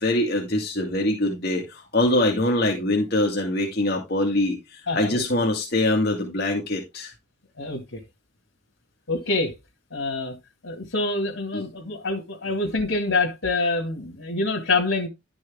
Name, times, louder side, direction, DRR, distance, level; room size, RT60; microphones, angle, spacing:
voice 1, 0.0-7.1 11.5-11.6, left 1 dB, 50° left, 2.0 m, -23 dB
voice 2, 4.9-5.2 7.6-8.0 9.1-9.6 9.9-10.4 10.6-15.1, left 3 dB, 90° left, 2.2 m, -26 dB
11.5 x 6.2 x 3.6 m
head